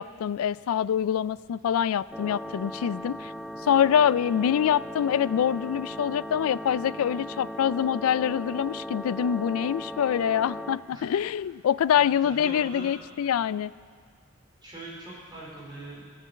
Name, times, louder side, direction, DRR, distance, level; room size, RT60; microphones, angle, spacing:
voice 1, 0.0-3.3 3.6-13.7, left 9 dB, 85° left, 19 dB, 0.3 m, -25 dB
sound 1, 2.1-10.8, equal, ahead, 0.4 m, -38 dB
voice 2, 11.9-13.0 14.6-16.0, right 2 dB, 20° right, -6 dB, 4.1 m, -42 dB
17.0 x 6.9 x 8.3 m, 2.1 s
head